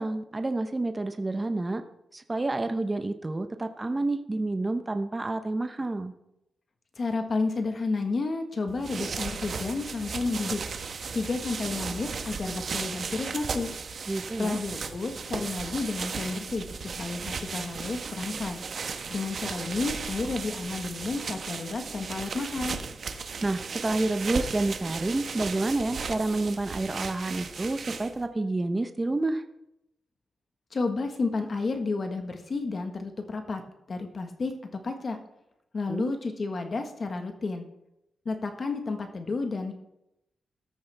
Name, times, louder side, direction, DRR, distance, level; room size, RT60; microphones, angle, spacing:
voice 1, 0.0-1.8 2.1-6.1 14.1-14.6 23.4-29.4 35.9-36.1, right 2 dB, 20° right, 7 dB, 0.8 m, -29 dB
voice 2, 7.0-10.6 11.1-13.7 14.4-16.7 17.0-18.6 19.1-22.8 30.7-33.6 33.9-34.5 34.8-35.2 35.7-37.7 38.2-39.7, left 3 dB, 45° left, 5 dB, 1.4 m, -31 dB
sound 1, 8.7-28.3, right 5 dB, 55° right, 1.2 m, -36 dB
14.5 x 13.0 x 3.5 m, 0.85 s
wide cardioid pair, 130°, 0 cm